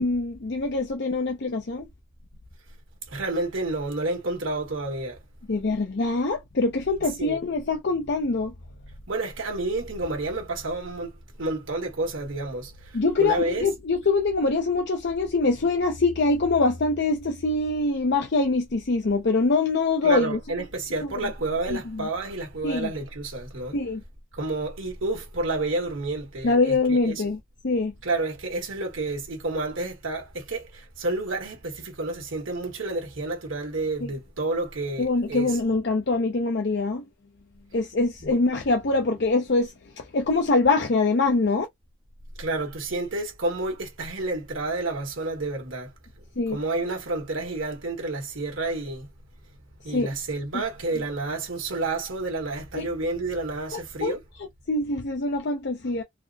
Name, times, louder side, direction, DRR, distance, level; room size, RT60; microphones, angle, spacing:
voice 1, 0.0-1.9 5.5-8.5 12.9-20.4 21.0-21.3 21.7-22.1 22.6-22.9 23.7-24.0 26.4-27.9 34.0-34.1 35.0-37.0 37.7-41.7 46.4-46.6 49.9-50.1 50.5-50.6 52.7-52.9 53.7-56.0, left 3 dB, 60° left, 0.6 m, -24 dB
voice 2, 3.1-5.2 7.2-7.4 9.1-11.1 11.4-12.7 13.2-13.7 20.0-23.7 24.4-27.2 28.0-30.6 31.0-35.5 38.2-38.3 42.4-45.9 46.5-49.1 49.8-54.2, right 2 dB, 85° right, 1.5 m, -30 dB
4.0 x 2.1 x 2.7 m
head